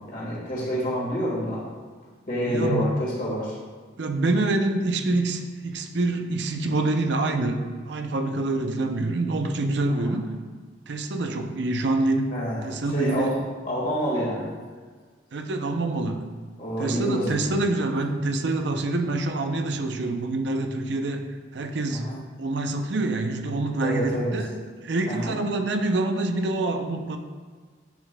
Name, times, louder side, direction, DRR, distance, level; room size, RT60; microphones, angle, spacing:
voice 1, 0.0-1.6 2.3-3.6 9.9-10.2 12.3-14.5 16.6-17.6 21.9-22.2 23.8-24.4 25.1-25.4, equal, 50° left, -6 dB, 1.8 m, -28 dB
voice 2, 2.5-2.8 4.0-10.3 10.9-12.3 12.6-13.3 15.3-16.3 16.8-21.3 21.5-22.0 22.4-24.5 24.8-27.2, right 2 dB, 70° right, 5 dB, 0.6 m, -26 dB
9.0 x 4.7 x 2.2 m, 1.5 s
head